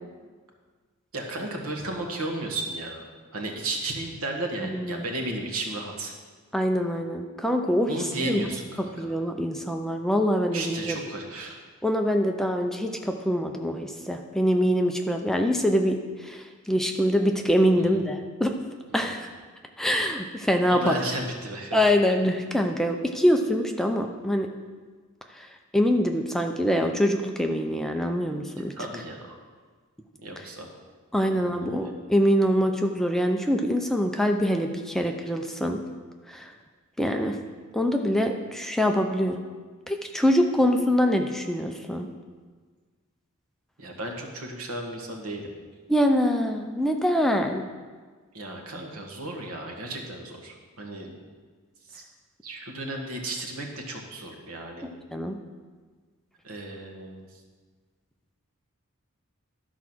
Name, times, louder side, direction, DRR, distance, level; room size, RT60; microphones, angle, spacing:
voice 1, 1.1-3.0 3.3-6.1 7.9-9.2 10.5-11.6 17.8-18.0 19.0-19.1 20.7-21.8 28.7-29.4 30.2-30.7 31.2-31.9 43.8-45.5 48.3-51.2 51.9-52.0 52.4-54.9 56.4-57.4, right 2 dB, 80° right, 1 dB, 1.5 m, -34 dB
voice 2, 4.7-5.0 6.5-7.9 8.3-8.4 9.0-11.0 11.8-18.5 18.9-19.3 19.8-20.9 21.7-24.5 25.3-25.5 25.7-28.7 31.1-35.8 36.3-36.5 37.0-37.4 37.7-39.4 39.9-42.1 45.9-47.6 54.8-55.4, equal, ahead, 3 dB, 0.5 m, -24 dB
12.5 x 4.7 x 6.1 m, 1.5 s
head